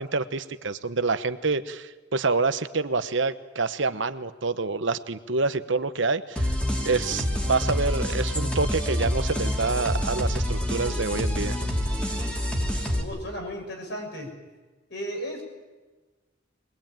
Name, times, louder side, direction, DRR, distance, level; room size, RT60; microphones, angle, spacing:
voice 1, 0.0-6.6 6.8-11.6, right 3 dB, 65° right, 11 dB, 1.0 m, -27 dB
sound 1, 6.4-13.0, equal, 5° left, 2.8 m, -27 dB
voice 2, 13.0-14.3 14.9-15.5, equal, 55° left, 3 dB, 6.2 m, -34 dB
23.0 x 21.0 x 9.0 m, 1.3 s
head